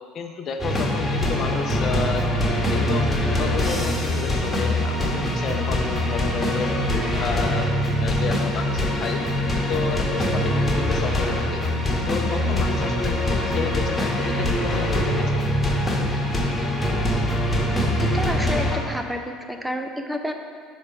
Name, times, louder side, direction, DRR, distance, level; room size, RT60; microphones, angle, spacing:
voice 1, 0.1-3.1 3.4-9.2 9.7-11.6 12.1-15.5, left 5 dB, 50° left, 3 dB, 0.7 m, -31 dB
sound 1, 0.6-18.8, left 1 dB, 15° left, 1.3 m, -23 dB
voice 2, 18.0-20.3, equal, 5° right, 5 dB, 0.6 m, -29 dB
5.4 x 4.3 x 5.6 m, 2.1 s
hypercardioid pair, 75°, 0 cm